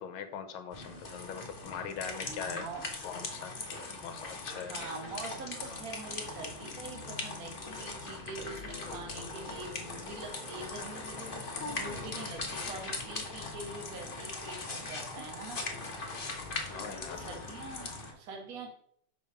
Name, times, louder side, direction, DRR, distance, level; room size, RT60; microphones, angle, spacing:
voice 1, 0.0-2.7 3.0-3.5 4.0-4.8 16.7-17.4, left 7 dB, 75° left, 9 dB, 1.6 m, -41 dB
sound 1, 0.7-18.1, left 3 dB, 30° left, 1.1 m, -40 dB
voice 2, 2.2-2.9 3.9-4.0 4.5-15.6 16.7-18.7, right 3 dB, 45° right, 2 dB, 1.8 m, -45 dB
5.9 x 5.5 x 5.7 m, 0.66 s
omnidirectional pair, 2.4 m